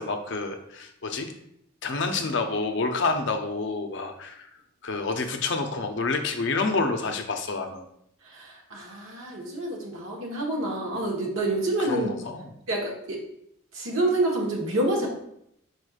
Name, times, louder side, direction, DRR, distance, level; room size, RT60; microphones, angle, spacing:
voice 1, 0.0-1.3 1.8-4.5 4.8-7.9 11.8-12.6, left 3 dB, 60° left, 6 dB, 0.5 m, -28 dB
voice 2, 8.2-12.1 12.7-13.2 13.7-15.1, right 1 dB, 80° right, -1 dB, 1.1 m, -27 dB
4.8 x 4.3 x 2.4 m, 0.74 s
head